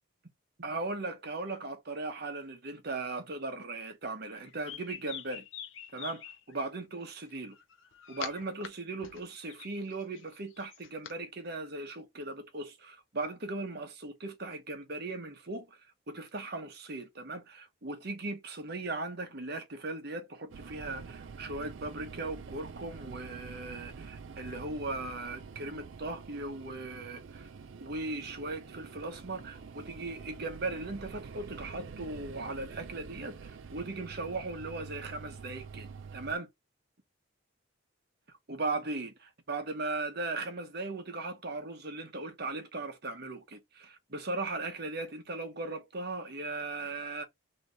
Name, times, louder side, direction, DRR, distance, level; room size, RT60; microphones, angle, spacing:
voice 1, 0.6-5.5 5.9-7.6 8.1-15.8 16.1-27.5 27.8-36.5 38.5-47.2, right 2 dB, 55° right, 1.1 m, -38 dB
sound 1, 4.3-6.7 7.5-8.7 9.0-11.1, left 8 dB, 85° left, 0.8 m, -44 dB
sound 2, 20.5-36.4, right 5 dB, 85° right, 0.5 m, -47 dB
3.3 x 3.1 x 4.0 m
head